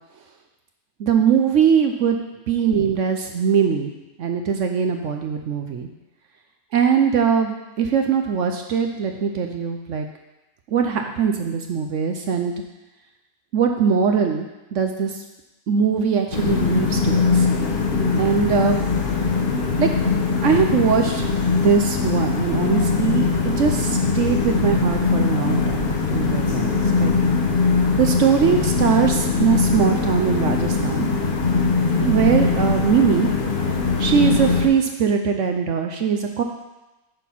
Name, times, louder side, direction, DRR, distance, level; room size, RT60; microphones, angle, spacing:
voice 1, 1.0-2.2 2.5-3.9 4.2-5.9 6.7-10.1 10.7-12.5 13.5-14.5 14.7-15.1 15.7-17.5 18.2-18.8 19.8-19.9 20.4-21.3 21.5-27.1 28.0-31.1 32.0-33.3 34.0-36.4, right 7 dB, 65° right, 4 dB, 0.9 m, -21 dB
sound 1, 16.3-34.7, left 4 dB, 40° left, 1.0 m, -21 dB
9.1 x 4.3 x 5.7 m, 1.0 s
omnidirectional pair, 1.5 m